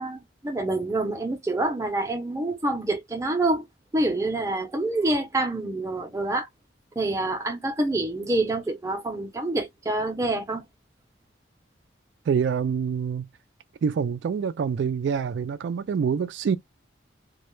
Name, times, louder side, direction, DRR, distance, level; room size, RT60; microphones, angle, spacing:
voice 1, 0.0-3.7 3.9-6.5 7.0-10.6, right 2 dB, 15° right, 0.5 m, -27 dB
voice 2, 12.3-13.3 13.8-16.6, right 6 dB, 70° right, 0.3 m, -26 dB
2.2 x 2.0 x 3.0 m
head